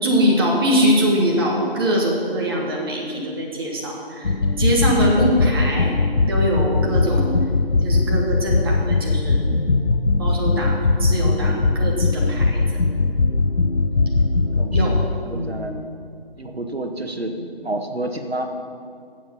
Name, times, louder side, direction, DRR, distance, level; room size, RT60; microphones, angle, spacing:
voice 1, 0.0-7.3 7.8-9.4 10.2-12.8 14.7-15.0 15.3-15.5 17.1-17.5, equal, 25° right, -2 dB, 1.5 m, -23 dB
sound 1, 4.2-15.1, left 3 dB, 85° left, 0.9 m, -20 dB
voice 2, 14.5-15.7 16.4-17.3 17.6-18.5, right 1 dB, 80° right, 5 dB, 1.3 m, -29 dB
16.0 x 7.4 x 5.4 m, 2.4 s
figure-of-eight pair, 155°, 31 cm